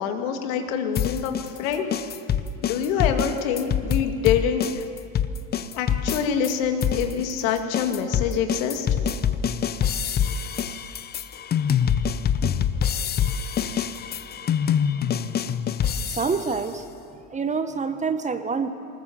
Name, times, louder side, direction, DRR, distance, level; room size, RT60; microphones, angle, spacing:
voice 1, 0.0-1.8 2.6-4.8 5.7-8.9, left 8 dB, 75° left, 5 dB, 2.2 m, -25 dB
sound 1, 1.0-6.5 6.8-16.6, left 8 dB, 25° left, 0.6 m, -25 dB
voice 2, 16.1-16.8 17.3-18.7, right 5 dB, 20° right, 10 dB, 0.9 m, -26 dB
20.0 x 19.5 x 7.3 m, 2.6 s
supercardioid pair, 110°, 40 cm